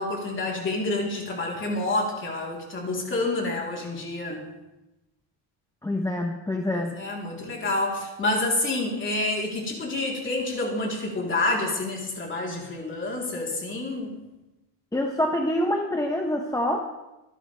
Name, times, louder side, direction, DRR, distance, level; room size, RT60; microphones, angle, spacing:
voice 1, 0.0-4.4 6.7-14.2, left 2 dB, 25° left, -2 dB, 3.7 m, -28 dB
voice 2, 5.8-6.9 14.9-16.9, left 1 dB, 5° left, 2 dB, 0.9 m, -26 dB
26.5 x 11.0 x 3.4 m, 1.0 s
cardioid pair, 165°, 48 cm